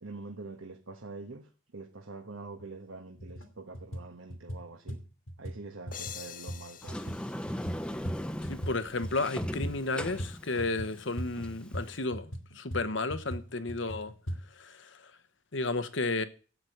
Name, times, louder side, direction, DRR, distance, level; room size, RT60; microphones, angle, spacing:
voice 1, 0.0-5.0 5.4-7.0, right 3 dB, 80° right, 1.3 m, -45 dB
sound 1, 2.6-2.7 3.1-3.5 3.7-8.8 9.0-14.4, equal, 85° left, 2.4 m, -39 dB
sound 2, 5.9-8.6, left 9 dB, 40° left, 0.8 m, -46 dB
Sliding door, 6.8-12.0, equal, 5° left, 0.7 m, -39 dB
voice 2, 8.5-14.1 14.6-15.0 15.5-16.2, left 3 dB, 65° left, 1.1 m, -33 dB
12.5 x 8.5 x 7.9 m
head